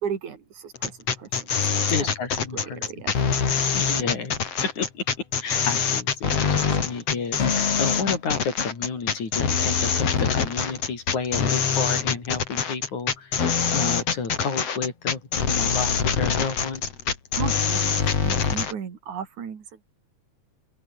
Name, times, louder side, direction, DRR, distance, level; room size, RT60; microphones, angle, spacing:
voice 1, 0.0-2.1 2.5-3.2 3.5-4.1 7.6-7.7 17.4-19.9, right 7 dB, 80° right, 4.2 m, -36 dB
sound 1, 0.8-18.7, left 6 dB, 55° left, 3.7 m, -24 dB
voice 2, 1.9-2.9 3.7-16.9, left 5 dB, 75° left, 6.2 m, -31 dB
open air
omnidirectional pair, 3.4 m